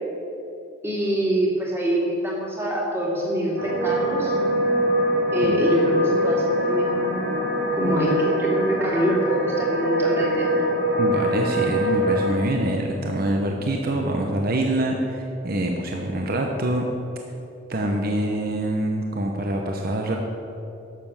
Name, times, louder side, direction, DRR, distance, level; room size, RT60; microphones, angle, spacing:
voice 1, 0.8-4.3 5.3-7.3 7.7-10.5, right 1 dB, 10° right, -4 dB, 2.5 m, -25 dB
sound 1, 3.6-12.3, equal, 80° right, 3.1 m, -23 dB
voice 2, 11.0-16.9 17.7-20.2, right 1 dB, 50° right, 1 dB, 0.9 m, -25 dB
12.0 x 7.1 x 7.3 m, 2.8 s
head